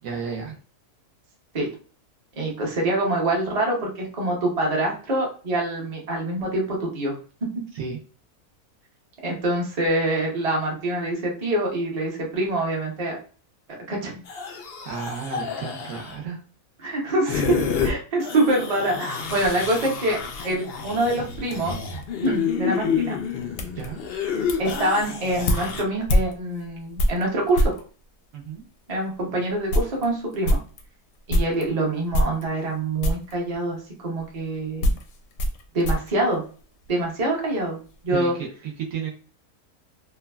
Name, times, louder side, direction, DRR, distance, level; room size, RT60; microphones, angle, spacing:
voice 1, 0.0-0.6 7.7-8.0 14.5-16.4 23.7-24.0 28.3-28.6 38.1-39.1, right 6 dB, 70° right, 0 dB, 1.0 m, -33 dB
voice 2, 2.4-7.2 9.2-13.2 13.9-14.2 16.8-17.6 17.8-20.2 20.4-21.8 22.2-23.2 24.6-27.7 28.9-30.6 31.3-34.9 35.7-36.4 36.9-37.8 38.0-38.3, right 1 dB, 35° right, -1 dB, 0.7 m, -25 dB
sound 1, 14.3-16.2 17.3-17.9 18.2-25.8, left 6 dB, 90° left, 0.5 m, -29 dB
sound 2, 19.2-27.9 28.6-28.7 29.1-29.2 29.5-31.7 32.1-32.8 33.0-33.4 34.2-37.1 37.4-38.0, equal, 70° left, 0.9 m, -27 dB
3.1 x 2.2 x 2.2 m, 0.39 s
omnidirectional pair, 1.6 m